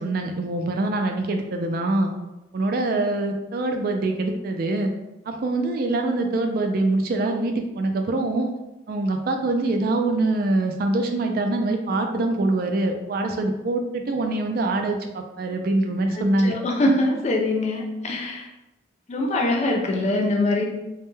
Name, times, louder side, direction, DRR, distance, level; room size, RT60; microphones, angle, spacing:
voice 1, 0.0-2.1 2.5-4.9 5.3-8.5 8.9-16.6, right 2 dB, 50° right, 4 dB, 0.3 m, -24 dB
voice 2, 16.1-18.5 19.1-20.6, left 1 dB, 35° left, 1 dB, 0.4 m, -23 dB
2.2 x 2.1 x 3.0 m, 0.97 s
head